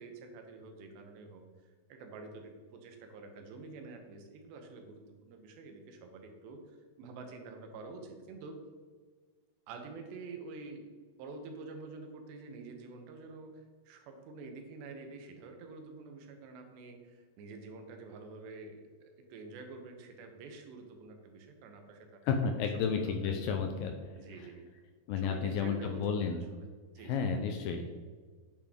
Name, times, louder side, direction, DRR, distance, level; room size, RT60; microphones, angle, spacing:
voice 1, 0.0-1.4 1.9-8.6 9.7-10.9 11.2-23.5 24.1-24.7 25.1-26.1 26.9-27.2, right 3 dB, 85° right, 4 dB, 3.3 m, -48 dB
voice 2, 22.3-23.9 24.4-24.5 25.1-26.4 27.0-27.9, left 6 dB, 80° left, 4 dB, 2.0 m, -32 dB
8.8 x 8.0 x 3.7 m, 1.5 s
omnidirectional pair, 4.8 m